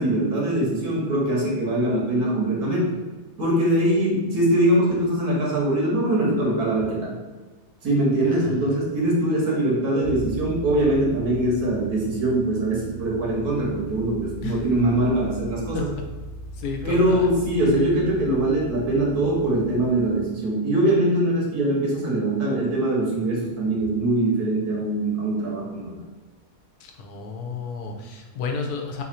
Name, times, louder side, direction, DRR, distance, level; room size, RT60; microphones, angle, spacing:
voice 1, 0.0-2.9 3.4-7.1 7.8-15.9 16.8-26.0, right 1 dB, 80° right, -3 dB, 1.9 m, -22 dB
voice 2, 8.2-8.6 14.4-14.6 15.7-15.8 16.6-17.3 26.8-29.0, left 4 dB, 85° left, 3 dB, 1.2 m, -32 dB
sound 1, 10.0-20.2, right 2 dB, 30° right, 0.8 m, -38 dB
4.0 x 2.6 x 4.2 m, 1.3 s
omnidirectional pair, 1.6 m